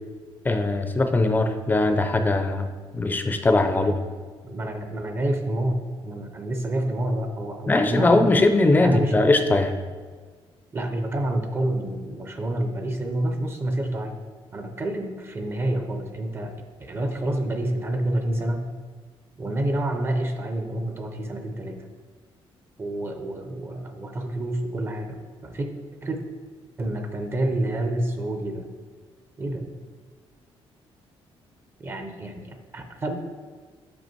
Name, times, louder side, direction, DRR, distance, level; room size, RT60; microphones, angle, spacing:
voice 1, 0.4-3.9 7.7-9.7, left 2 dB, 20° left, 7 dB, 0.5 m, -20 dB
voice 2, 4.4-8.3 8.8-9.2 10.7-14.2 14.5-16.5 16.8-18.7 19.4-21.9 22.8-25.7 26.0-26.2 26.8-28.7 29.4-29.7 31.8-33.2, right 1 dB, 25° right, 5 dB, 0.6 m, -28 dB
5.7 x 5.3 x 4.5 m, 1.5 s
cardioid pair, 140°, 10 cm